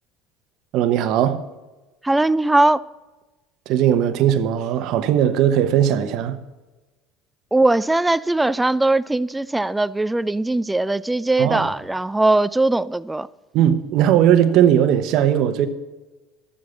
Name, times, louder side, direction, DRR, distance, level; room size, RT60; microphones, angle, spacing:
voice 1, 0.7-1.4 3.7-6.4 11.4-11.7 13.5-15.7, right 10 dB, 60° right, 1.0 m, -18 dB
voice 2, 2.0-2.8 7.5-13.3, right 2 dB, 10° right, 0.4 m, -20 dB
12.5 x 7.9 x 7.0 m
supercardioid pair, 85°, 0 cm